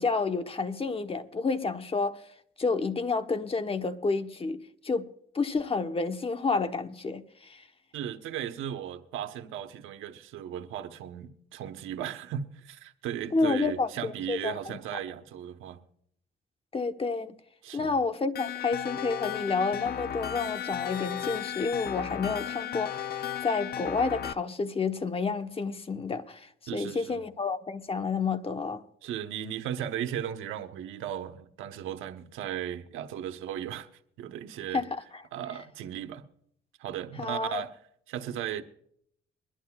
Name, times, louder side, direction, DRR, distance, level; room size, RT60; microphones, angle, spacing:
voice 1, 0.0-2.2 2.6-5.1 5.3-7.6 13.3-13.9 14.3-14.8 16.7-17.3 17.7-28.8 34.7-35.2 35.5-35.6 37.2-37.7, left 4 dB, 30° left, 1.2 m, -30 dB
voice 2, 7.9-15.8 17.6-18.0 26.7-27.2 29.0-33.9 34.2-34.8 35.3-36.2 36.8-37.7 38.1-38.6, right 10 dB, 90° right, 1.1 m, -36 dB
sound 1, 18.3-24.3, left 9 dB, 50° left, 0.5 m, -35 dB
23.0 x 11.5 x 2.4 m
cardioid pair, 90°, 20 cm